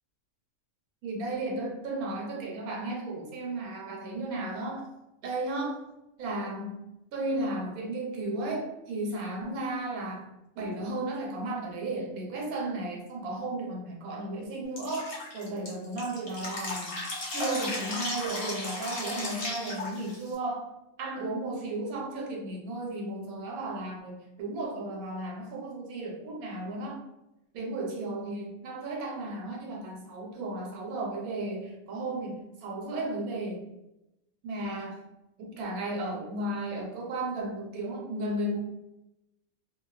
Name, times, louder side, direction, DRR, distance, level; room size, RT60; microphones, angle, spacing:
voice 1, 1.0-4.9 5.2-5.8 6.2-6.8 7.1-10.3 10.5-17.0 17.3-20.7 21.0-27.1 27.5-33.7 34.4-35.0 35.4-38.6, right 2 dB, 85° right, 0 dB, 1.1 m, -34 dB
Drip, 14.8-20.3, left 2 dB, 50° left, 0.8 m, -35 dB
2.5 x 2.2 x 2.3 m, 0.91 s
omnidirectional pair, 1.5 m